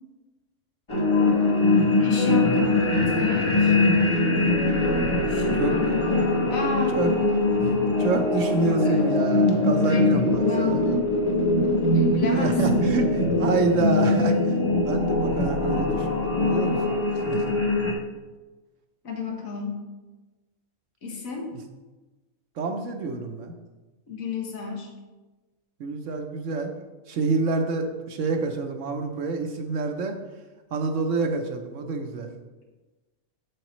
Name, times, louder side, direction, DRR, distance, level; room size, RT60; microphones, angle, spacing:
sound 1, 0.9-17.9, left 2 dB, 25° left, 0.8 m, -22 dB
voice 1, 2.0-3.8 5.2-6.2 6.5-7.3 8.8-9.0 9.8-11.2 11.7-12.8 19.0-19.8 21.0-21.5 24.1-24.9, left 5 dB, 70° left, 0 dB, 1.7 m, -32 dB
voice 2, 5.6-6.0 6.9-7.1 7.8-10.8 12.4-13.1 13.4-14.5 14.8-17.6 22.6-23.5 25.8-26.7 27.1-30.1 30.7-32.3, right 3 dB, 65° right, 5 dB, 1.0 m, -27 dB
7.8 x 7.3 x 3.1 m, 1.2 s
omnidirectional pair, 1.5 m